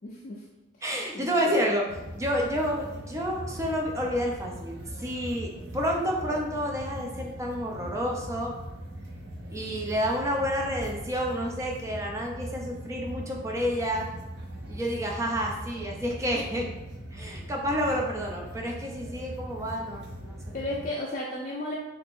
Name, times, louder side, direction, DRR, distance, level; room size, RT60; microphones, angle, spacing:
voice 1, 0.0-0.4 1.1-1.7 20.5-21.7, left 1 dB, 45° left, -4 dB, 0.4 m, -34 dB
voice 2, 0.8-1.8 2.1-5.5 5.7-8.5 9.5-14.1 14.7-16.7 17.1-20.7, equal, 15° right, 0 dB, 0.5 m, -29 dB
sound 1, 1.9-20.9, right 1 dB, 65° right, 0.6 m, -40 dB
2.8 x 2.5 x 3.6 m, 1.0 s
head